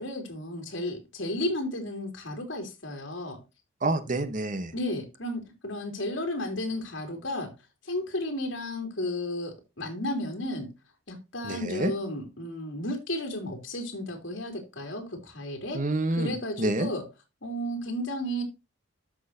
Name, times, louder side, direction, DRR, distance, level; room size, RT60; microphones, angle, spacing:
voice 1, 0.0-3.4 4.7-7.5 7.8-10.7 11.1-15.8 16.2-17.0 17.4-18.4, left 1 dB, 70° left, 3.3 m, -33 dB
voice 2, 3.8-4.7 11.4-11.9 15.7-16.9, right 2 dB, 40° right, 1.0 m, -28 dB
13.0 x 6.3 x 2.7 m
head